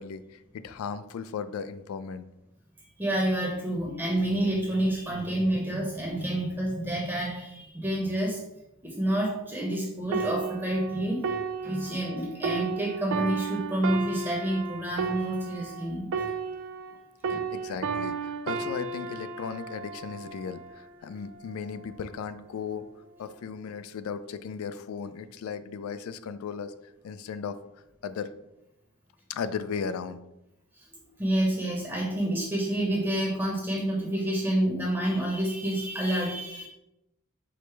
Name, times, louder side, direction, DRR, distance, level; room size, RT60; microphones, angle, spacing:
voice 1, 0.0-2.3 17.3-22.8 23.2-26.7 27.0-27.6 28.0-28.3 29.3-30.2, left 6 dB, 75° left, 12 dB, 0.3 m, -36 dB
voice 2, 3.0-8.4 8.8-11.2 11.6-16.1 17.3-17.4 30.7-30.9 31.2-36.7, right 1 dB, 10° right, -3 dB, 0.7 m, -28 dB
sound 1, 10.1-17.0 17.2-20.8 21.5-21.7, right 5 dB, 60° right, 0.4 m, -33 dB
4.8 x 2.0 x 4.5 m, 0.87 s
head